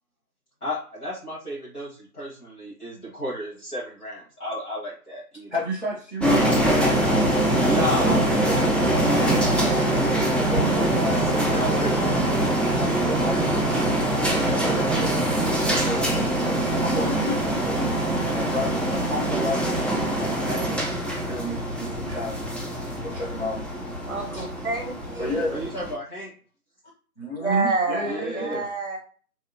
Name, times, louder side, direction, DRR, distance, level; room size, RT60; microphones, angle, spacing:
voice 1, 0.6-5.5 7.5-10.5 10.7-12.2 25.5-26.3 28.1-28.6, equal, 80° left, -7 dB, 1.3 m, -33 dB
voice 2, 5.5-6.8 8.5-8.8 10.4-11.9 12.7-13.8 14.1-15.6 15.8-17.9 18.3-19.9 20.4-22.5 23.0-23.7 24.3-24.5 25.2-25.6 27.2-28.7, equal, 50° left, -5 dB, 0.6 m, -32 dB
sound 1, 6.2-25.9, right 1 dB, 5° left, 0.4 m, -23 dB
voice 3, 24.1-25.5 27.4-29.0, right 3 dB, 55° right, 3 dB, 0.5 m, -28 dB
2.7 x 2.0 x 2.6 m, 0.42 s
figure-of-eight pair, 170°, 45 cm